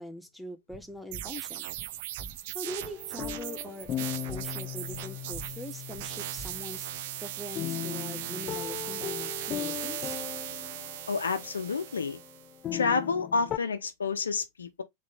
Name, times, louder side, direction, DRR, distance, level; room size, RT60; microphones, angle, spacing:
voice 1, 0.0-1.7 2.5-3.9 4.3-6.9 7.2-10.2, equal, ahead, 0.7 m, -42 dB
sound 1, 0.7-7.0, right 3 dB, 25° right, 1.8 m, -48 dB
sound 2, 1.1-12.5, right 15 dB, 50° right, 0.3 m, -38 dB
sound 3, 2.6-13.6, left 12 dB, 30° left, 0.3 m, -38 dB
voice 2, 11.1-12.2 12.7-14.8, left 5 dB, 70° left, 0.9 m, -29 dB
3.9 x 3.7 x 3.5 m
figure-of-eight pair, 90°, 0 cm